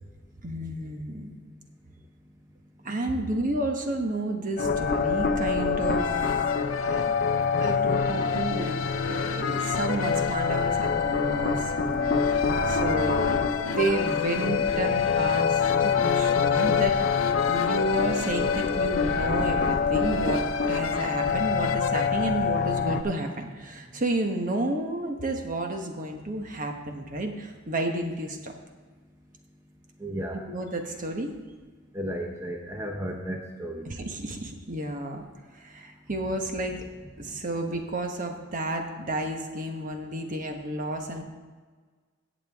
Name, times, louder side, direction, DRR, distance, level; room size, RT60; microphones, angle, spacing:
voice 1, 0.4-1.4 2.8-6.1 6.7-7.3 7.6-17.0 17.5-28.5 30.5-31.3 33.8-35.2 35.5-36.8 37.2-41.2, right 1 dB, 45° right, 4 dB, 1.2 m, -31 dB
sound 1, 4.6-23.0, left 5 dB, 50° left, 0.6 m, -26 dB
sound 2, 6.0-22.1, left 6 dB, 85° left, 0.6 m, -33 dB
voice 2, 30.0-30.4 31.9-33.9, equal, 15° right, 1 dB, 0.8 m, -34 dB
16.5 x 7.3 x 3.6 m, 1.4 s
head